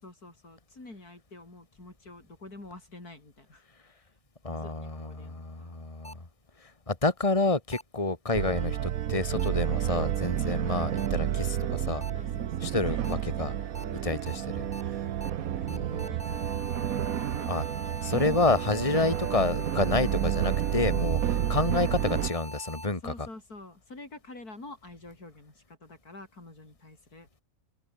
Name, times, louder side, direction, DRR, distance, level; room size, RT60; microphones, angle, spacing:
voice 1, 0.0-3.9 4.5-5.8 12.1-14.8 15.4-16.6 23.0-27.3, left 2 dB, 90° left, 6.5 m, -48 dB
voice 2, 4.4-6.2 6.9-12.0 12.6-13.5 14.0-14.7 15.7-16.1 17.5-17.6 18.0-23.1, left 3 dB, 20° left, 2.8 m, -29 dB
sound 1, 6.0-6.1 7.7-7.8 9.4-9.5 11.0-11.1 12.0-12.1 13.0-13.1 13.7-13.8 14.3-14.4 14.7-14.8 15.2-15.3 15.7-22.9, equal, 5° left, 5.0 m, -43 dB
sound 2, 8.3-22.3, right 10 dB, 70° right, 1.3 m, -30 dB
omnidirectional pair, 1.6 m